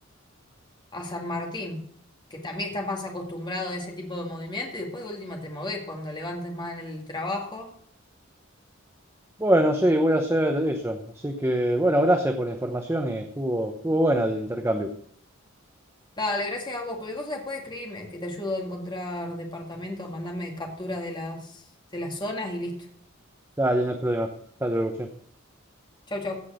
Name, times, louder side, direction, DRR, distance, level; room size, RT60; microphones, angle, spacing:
voice 1, 0.9-1.8 2.3-7.7 16.2-21.6 21.9-22.9 26.1-26.4, left 1 dB, 20° left, 0 dB, 2.2 m, -33 dB
voice 2, 9.4-11.0 11.2-14.9 23.6-24.3 24.6-25.1, right 1 dB, 15° right, 5 dB, 0.8 m, -24 dB
15.5 x 6.0 x 6.3 m, 0.63 s
head